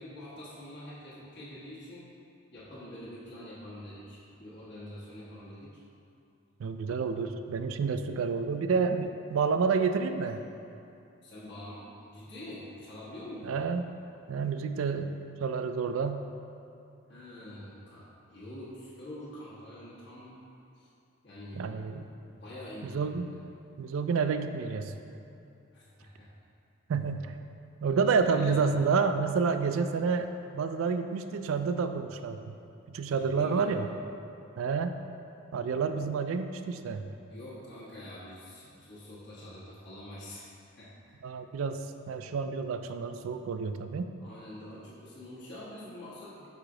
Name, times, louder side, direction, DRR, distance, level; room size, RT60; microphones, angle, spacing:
voice 1, 0.0-2.1 2.5-5.8 11.2-13.6 17.1-20.4 20.7-20.9 21.2-21.7 22.2-23.1 25.7-26.3 27.8-28.7 33.1-33.7 37.3-40.5 40.8-41.1 44.2-46.5, left 1 dB, 55° left, -9 dB, 1.2 m, -45 dB
voice 2, 6.6-10.4 13.4-13.8 14.3-16.3 21.5-22.1 22.8-23.3 23.8-25.0 26.9-27.3 27.8-30.3 30.5-32.5 32.9-33.9 34.6-35.0 35.5-37.1 41.2-41.8 42.1-44.1, right 5 dB, 75° right, 9 dB, 0.3 m, -29 dB
5.8 x 4.9 x 3.7 m, 2.7 s
head